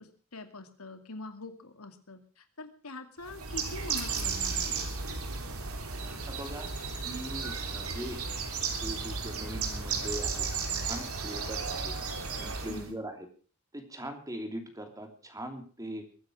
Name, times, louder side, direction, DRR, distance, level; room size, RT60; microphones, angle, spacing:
voice 1, 0.0-5.2 12.7-13.0, left 2 dB, 90° left, 8 dB, 2.4 m, -44 dB
Bird, 3.2-12.9, right 5 dB, 85° right, 3.4 m, -34 dB
voice 2, 6.3-6.7 7.0-8.2 8.8-10.5 10.8-11.9 12.4-13.3 13.7-16.0, right 1 dB, 15° right, 6 dB, 2.9 m, -40 dB
21.5 x 9.4 x 6.3 m, 0.40 s
head